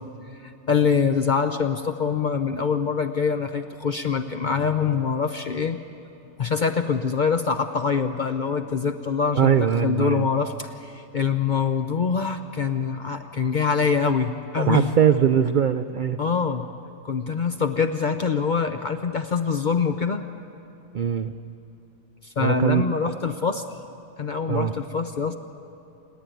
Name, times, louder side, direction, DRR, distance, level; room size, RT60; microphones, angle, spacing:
voice 1, 0.4-5.8 6.4-14.9 16.2-16.6 17.0-20.2 22.2-23.6 24.2-25.3, left 6 dB, 50° left, 7 dB, 0.6 m, -24 dB
voice 2, 9.4-10.3 14.6-16.2 20.9-21.3 22.4-22.9 24.5-24.7, right 8 dB, 75° right, 9 dB, 0.4 m, -21 dB
28.5 x 10.0 x 9.2 m, 3.0 s
omnidirectional pair, 1.5 m